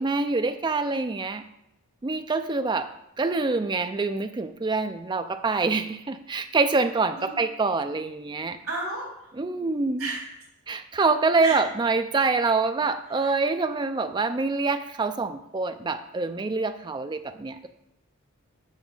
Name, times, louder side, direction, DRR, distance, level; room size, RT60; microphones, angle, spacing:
voice 1, 0.0-1.4 2.0-2.9 3.2-8.6 9.4-10.1 10.7-17.7, right 3 dB, 20° right, 9 dB, 0.3 m, -26 dB
voice 2, 8.6-9.3 10.0-10.2 11.4-11.6 13.1-13.3, right 2 dB, 80° right, -4 dB, 2.0 m, -32 dB
7.4 x 5.9 x 3.8 m, 0.83 s
head